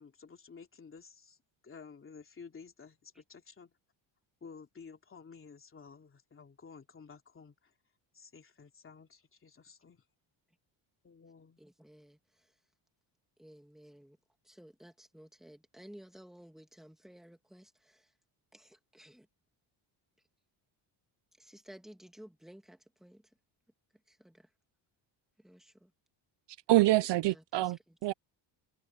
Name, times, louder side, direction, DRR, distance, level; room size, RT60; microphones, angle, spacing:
voice 1, 0.0-1.4 1.6-3.7 4.4-7.7 8.1-10.0 11.0-11.6, left 5 dB, 25° left, 2.9 m, -53 dB
voice 2, 11.6-12.5 13.4-14.2 14.4-18.1 18.5-19.3 21.4-23.2 24.1-24.5 25.4-25.9 27.2-27.7, equal, ahead, 2.2 m, -55 dB
voice 3, 26.7-28.1, right 17 dB, 65° right, 0.6 m, -26 dB
cardioid pair, 150°, 47 cm